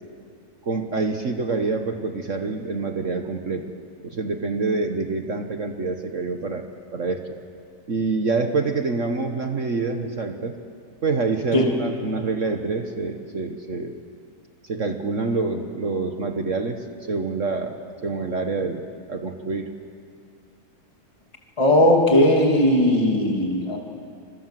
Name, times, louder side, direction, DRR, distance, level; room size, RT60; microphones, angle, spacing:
voice 1, 0.6-3.7 4.0-7.3 7.9-10.6 11.0-14.0 14.6-19.7, right 3 dB, 50° right, 5 dB, 1.6 m, -26 dB
voice 2, 21.6-23.8, left 1 dB, 20° left, 0 dB, 2.9 m, -18 dB
29.0 x 25.5 x 7.6 m, 2.3 s
omnidirectional pair, 1.7 m